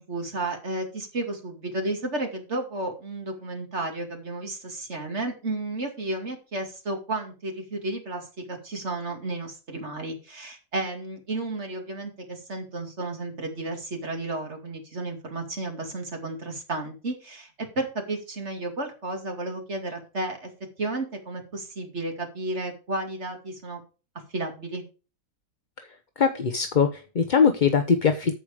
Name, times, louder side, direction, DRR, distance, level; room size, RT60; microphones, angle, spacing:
voice 1, 0.0-20.5 20.8-23.8 24.3-24.8, right 2 dB, 45° right, 3 dB, 2.6 m, -32 dB
voice 2, 26.2-28.3, left 6 dB, 40° left, 7 dB, 0.8 m, -22 dB
13.5 x 5.0 x 4.9 m, 0.33 s
omnidirectional pair, 1.6 m